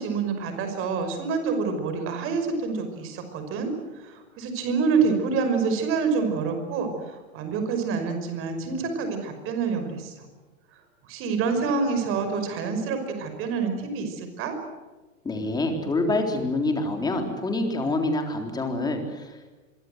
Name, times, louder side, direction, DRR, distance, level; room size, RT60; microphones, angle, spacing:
voice 1, 0.0-3.7 4.0-10.3 11.1-14.6, right 5 dB, 30° right, 7 dB, 5.7 m, -27 dB
voice 2, 15.2-19.4, left 2 dB, 10° left, 4 dB, 3.8 m, -26 dB
26.0 x 24.0 x 8.1 m, 1.2 s
supercardioid pair, 155°, 42 cm